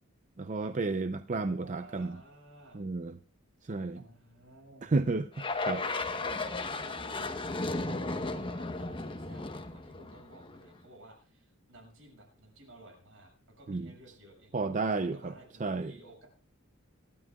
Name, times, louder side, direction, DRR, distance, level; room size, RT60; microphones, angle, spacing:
voice 1, 0.4-2.2 2.7-3.2 3.6-4.0 4.8-5.8 13.7-13.9 14.5-15.3 15.6-15.9, right 3 dB, 35° right, 10 dB, 0.5 m, -32 dB
voice 2, 1.5-2.8 3.9-4.9 5.6-9.4 9.7-13.3 13.6-16.3, right 1 dB, 60° right, 3 dB, 6.6 m, -54 dB
sound 1, 5.4-10.7, left 3 dB, 25° left, 1.0 m, -35 dB
25.0 x 12.5 x 2.3 m, 0.39 s
head